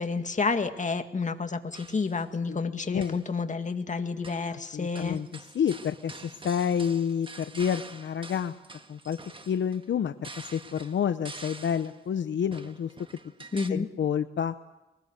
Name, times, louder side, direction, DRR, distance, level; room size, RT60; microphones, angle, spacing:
voice 1, 0.0-5.2 13.5-13.9, left 4 dB, 40° left, 7 dB, 2.0 m, -30 dB
sound 1, 1.7-2.2 2.9-3.3 4.2-4.6 5.0-12.0 12.5-13.7, right 3 dB, 25° right, 1.5 m, -46 dB
voice 2, 4.5-8.5 8.9-9.2 9.5-12.9 13.7-14.5, left 8 dB, 70° left, 10 dB, 0.9 m, -29 dB
23.0 x 20.0 x 8.1 m, 1.0 s
cardioid pair, 85°, 20 cm